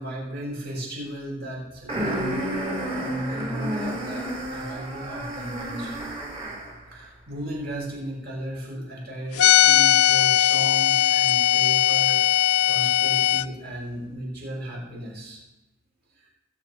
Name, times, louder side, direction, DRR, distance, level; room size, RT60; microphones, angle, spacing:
voice 1, 0.0-2.6 3.0-6.1 6.9-12.2 12.6-15.4 16.2-16.3, right 1 dB, 50° right, -4 dB, 5.9 m, -35 dB
sound 1, 1.9-6.8, right 1 dB, 25° right, 3.5 m, -30 dB
sound 2, 9.4-13.4, left 12 dB, 85° left, 0.4 m, -19 dB
19.5 x 8.7 x 4.2 m, 1.0 s
head